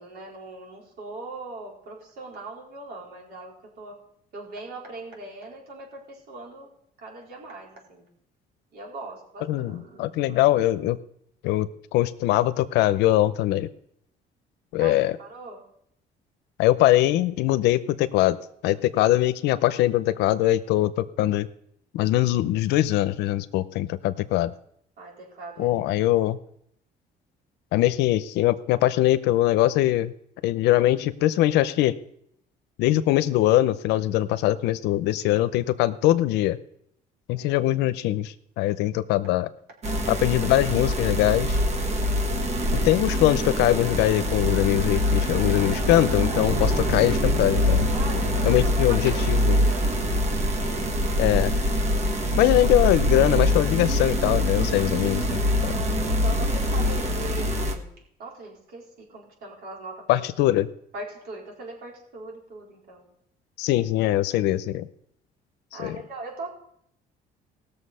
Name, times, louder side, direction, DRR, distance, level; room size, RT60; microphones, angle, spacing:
voice 1, 0.0-4.0 4.3-6.7 7.0-8.1 8.7-10.4 14.8-15.6 25.0-25.8 26.1-26.3 37.3-37.7 47.9-49.9 52.4-52.8 55.7-57.9 58.2-60.6 60.9-63.1 65.7-66.5, right 2 dB, 65° right, -1 dB, 4.0 m, -40 dB
voice 2, 9.5-11.0 11.4-13.7 14.7-15.2 16.6-18.4 18.6-21.5 21.9-24.5 25.6-26.4 27.7-30.1 30.4-31.9 32.8-36.6 37.3-39.5 40.1-41.6 42.8-47.9 48.5-49.5 51.2-51.5 52.4-55.7 60.1-60.7 63.6-64.9 65.8-66.0, left 15 dB, 85° left, 15 dB, 0.6 m, -22 dB
sound 1, 39.8-57.7, equal, 40° right, 1.5 m, -24 dB
17.5 x 6.8 x 5.5 m, 0.72 s
cardioid pair, 110°, 17 cm